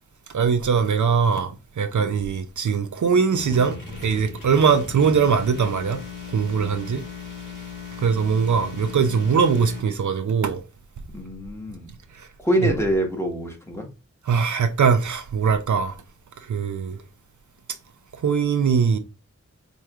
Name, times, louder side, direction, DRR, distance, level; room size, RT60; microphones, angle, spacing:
voice 1, 0.3-6.0 6.3-7.0 8.0-10.6 12.2-12.3 12.6-12.7 14.3-16.0 16.5-17.0 18.2-19.0, right 6 dB, 65° right, 0.5 m, -21 dB
sound 1, 3.3-9.8, left 6 dB, 85° left, 1.7 m, -37 dB
voice 2, 11.1-11.9 12.4-13.9, right 1 dB, 10° left, 1.2 m, -25 dB
4.5 x 3.0 x 2.3 m
wide cardioid pair, 45°, 32 cm